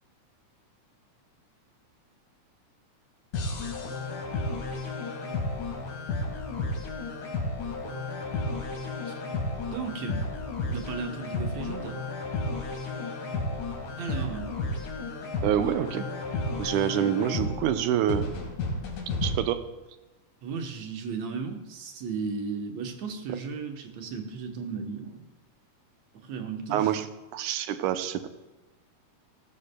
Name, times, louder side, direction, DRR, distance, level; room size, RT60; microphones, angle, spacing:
sound 1, 3.3-19.3, left 3 dB, 90° left, 3.4 m, -32 dB
voice 1, 9.7-10.2 10.7-12.0 14.0-14.5 20.4-25.2 26.2-26.9, right 5 dB, 70° right, 4 dB, 2.2 m, -35 dB
voice 2, 15.4-16.1 16.6-18.3 19.2-19.7 26.7-27.1 27.3-28.3, right 10 dB, 85° right, 9 dB, 2.2 m, -26 dB
17.0 x 13.5 x 2.2 m, 1.1 s
omnidirectional pair, 3.5 m